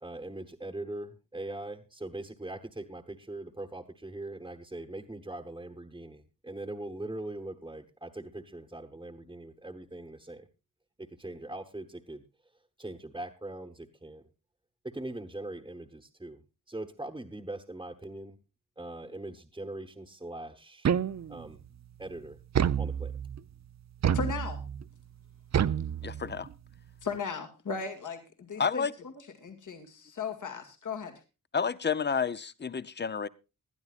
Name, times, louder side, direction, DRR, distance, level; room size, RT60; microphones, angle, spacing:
voice 1, 0.0-10.5 11.0-12.2 12.8-14.2 14.8-18.4 18.8-20.9 21.3-21.6 22.0-22.4 22.8-23.1, right 2 dB, 15° right, 3 dB, 1.1 m, -41 dB
sound 1, 20.8-21.5 22.5-23.4 24.0-24.8 25.5-26.5, right 8 dB, 55° right, 0.6 m, -29 dB
voice 2, 24.1-24.6 27.0-29.1 29.4-31.2, left 5 dB, 65° left, 5 dB, 2.1 m, -37 dB
voice 3, 26.0-26.5 28.6-28.9 31.5-33.3, left 6 dB, 30° left, 17 dB, 0.7 m, -30 dB
20.5 x 12.0 x 2.4 m, 0.29 s
wide cardioid pair, 120°, 33 cm